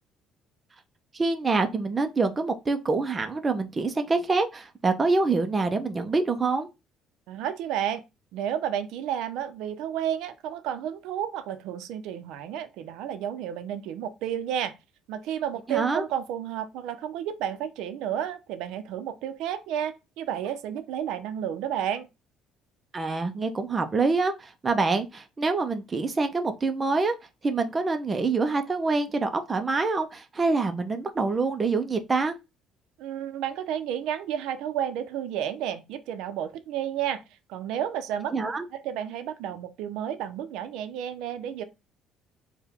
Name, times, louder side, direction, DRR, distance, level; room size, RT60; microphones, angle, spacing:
voice 1, 1.1-6.7 15.7-16.1 22.9-27.1 27.4-32.3 38.3-38.7, right 3 dB, 20° right, 0.4 m, -26 dB
voice 2, 7.3-8.0 8.3-14.7 15.1-22.1 33.0-37.2 37.5-38.3 38.7-41.6, right 10 dB, 75° right, 0.5 m, -31 dB
4.5 x 2.2 x 3.5 m
cardioid pair, 170°, 0 cm